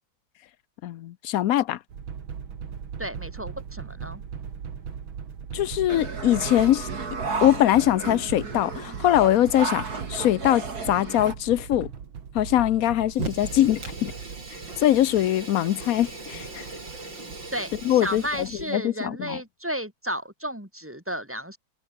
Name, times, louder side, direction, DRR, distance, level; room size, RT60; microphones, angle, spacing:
voice 1, 0.8-1.8 5.5-6.9 7.4-11.9 12.3-14.1 14.8-16.7 17.8-18.5 18.7-19.4, left 12 dB, 70° left, 0.8 m, -22 dB
sound 1, 1.9-18.7, right 7 dB, 85° right, 2.8 m, -39 dB
voice 2, 3.0-4.2 17.5-21.6, right 1 dB, 5° right, 5.7 m, -33 dB
sound 2, 5.9-11.3, right 4 dB, 50° right, 3.7 m, -33 dB
Fire, 13.1-18.7, right 3 dB, 65° right, 6.9 m, -39 dB
omnidirectional pair, 2.1 m